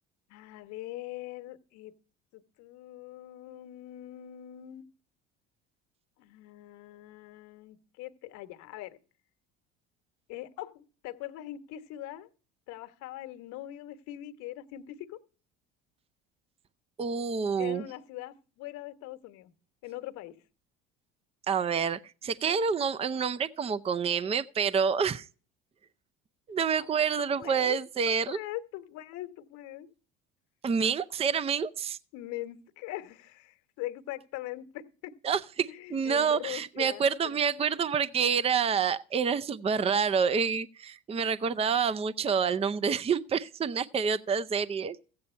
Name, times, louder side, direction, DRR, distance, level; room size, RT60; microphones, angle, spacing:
voice 1, 0.3-1.9 2.3-4.9 6.2-9.0 10.3-12.3 12.7-15.2 17.6-19.5 19.8-20.4 26.8-27.8 28.1-29.9 32.1-35.1 35.7-37.0, left 14 dB, 70° left, 1.3 m, -42 dB
voice 2, 17.0-17.8 21.5-25.3 26.5-28.4 30.6-32.0 35.2-45.0, right 6 dB, 20° right, 0.5 m, -28 dB
14.5 x 8.7 x 4.4 m
supercardioid pair, 85°, 30 cm